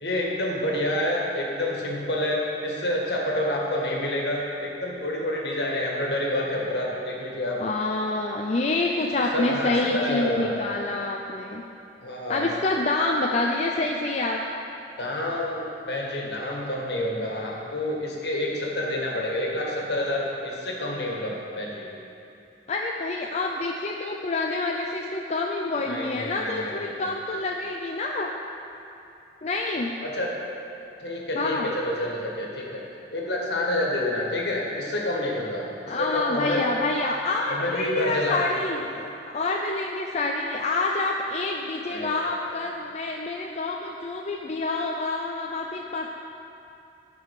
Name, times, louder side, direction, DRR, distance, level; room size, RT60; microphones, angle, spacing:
voice 1, 0.0-7.6 9.2-10.6 12.0-12.6 15.0-21.9 25.9-27.1 30.0-30.4 31.0-32.9 33.1-36.6 37.5-38.5 41.9-42.3, left 1 dB, 70° left, -2 dB, 1.8 m, -28 dB
voice 2, 7.6-11.6 12.3-14.4 22.7-28.3 29.4-29.9 31.3-31.7 35.9-46.1, left 2 dB, 40° left, 0 dB, 0.5 m, -27 dB
16.0 x 5.4 x 4.9 m, 2.7 s
head